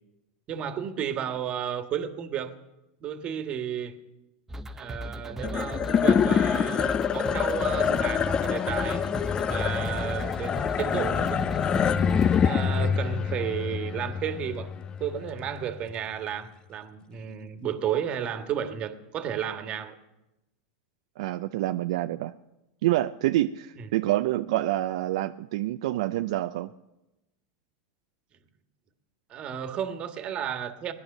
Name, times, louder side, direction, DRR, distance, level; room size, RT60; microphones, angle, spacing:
voice 1, 0.5-2.5 3.0-3.9 4.7-9.1 9.4-11.9 12.4-20.0 23.8-23.9 29.3-30.9, right 9 dB, 35° right, 8 dB, 1.5 m, -33 dB
sound 1, 4.5-12.5, equal, 10° right, 0.7 m, -38 dB
sound 2, 5.4-15.9, left 7 dB, 25° left, 0.5 m, -26 dB
voice 2, 21.2-22.3 22.8-26.7, right 15 dB, 70° right, 9 dB, 0.5 m, -27 dB
19.0 x 11.0 x 6.6 m, 0.97 s
supercardioid pair, 125°, 3 cm